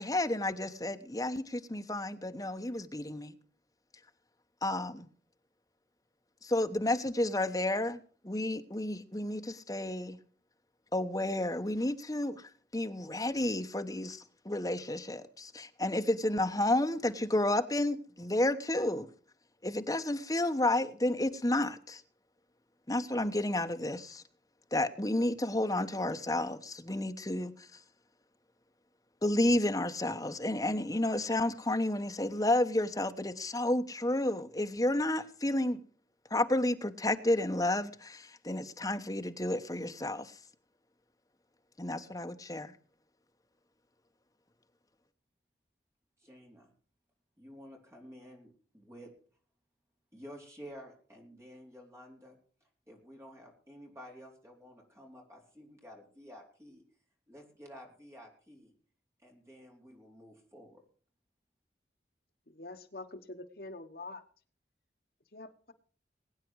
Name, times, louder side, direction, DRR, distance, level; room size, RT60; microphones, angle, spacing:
voice 1, 0.0-3.3 4.6-5.1 6.4-10.2 10.9-19.1 19.6-22.0 22.9-24.2 24.7-27.5 29.2-35.8 36.3-40.3 41.8-42.7, left 1 dB, 20° left, 1.0 m, -31 dB
voice 2, 46.2-46.7 47.4-49.1 50.1-52.4 52.9-56.8 57.3-58.7 59.2-60.8, equal, 15° right, 4.2 m, -52 dB
voice 3, 62.5-64.2 65.3-65.7, left 2 dB, 55° left, 1.2 m, -45 dB
21.5 x 9.3 x 4.7 m
head